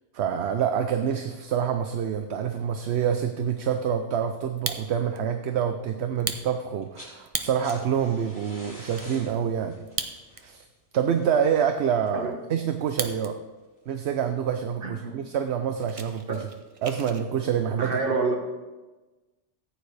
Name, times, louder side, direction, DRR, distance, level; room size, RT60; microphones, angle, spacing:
voice 1, 0.1-9.8 10.4-10.6 10.9-13.4 13.9-16.5 16.8-18.0, right 8 dB, 65° right, 7 dB, 0.9 m, -27 dB
Fire, 4.4-5.2 5.6-5.7 6.1-7.8 8.3-8.4 8.6-9.1 9.8-10.6 10.9-11.0 11.6-13.3 13.6-14.1 14.7-14.8 15.0-15.2 15.5-17.2, right 4 dB, 35° right, 0.7 m, -36 dB
sound 1, 6.7-7.2 7.4-12.3 13.6-13.7, left 1 dB, 15° left, 3.2 m, -47 dB
voice 2, 14.8-15.2 16.3-16.4 17.8-18.4, right 3 dB, 50° right, 3 dB, 1.5 m, -27 dB
14.5 x 9.3 x 3.3 m, 1.2 s
omnidirectional pair, 1.2 m